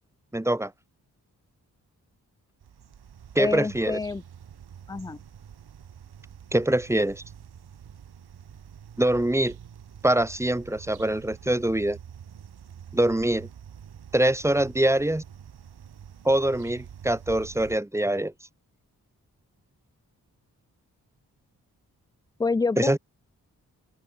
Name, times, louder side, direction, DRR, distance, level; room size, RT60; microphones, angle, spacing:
voice 1, 0.3-0.7 3.3-4.0 6.5-7.2 9.0-9.5 10.0-12.0 12.9-13.5 14.1-15.2 16.2-18.3 22.8-23.0, right 1 dB, 5° right, 0.8 m, -24 dB
sound 1, 2.6-17.8, right 8 dB, 80° right, 5.6 m, -46 dB
voice 2, 3.4-4.2 4.9-5.2 22.4-23.0, left 4 dB, 10° left, 0.3 m, -27 dB
open air
supercardioid pair, 45°, 38 cm